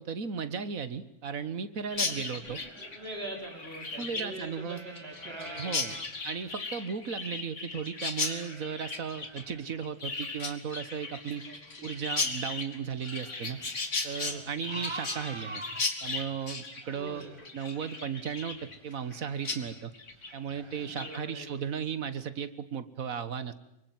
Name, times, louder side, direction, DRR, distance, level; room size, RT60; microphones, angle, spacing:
voice 1, 0.0-2.6 4.0-4.8 5.6-6.0 6.2-11.4 11.8-13.6 14.0-15.6 16.0-17.3 17.5-19.9 20.3-23.5, right 7 dB, 70° right, 13 dB, 1.8 m, -35 dB
Chirp tweet, 1.9-19.2 19.4-19.6 19.9-20.3 20.7-21.2, left 3 dB, 55° left, 2.5 m, -36 dB
sound 1, 2.3-7.3 7.7-21.9, right 2 dB, 20° right, 1.3 m, -49 dB
voice 2, 2.5-6.0 11.3-11.9 14.2-14.5 16.9-17.4 20.8-21.7, right 1 dB, 40° right, 2 dB, 4.8 m, -44 dB
25.0 x 24.0 x 9.4 m, 0.79 s
omnidirectional pair, 1.5 m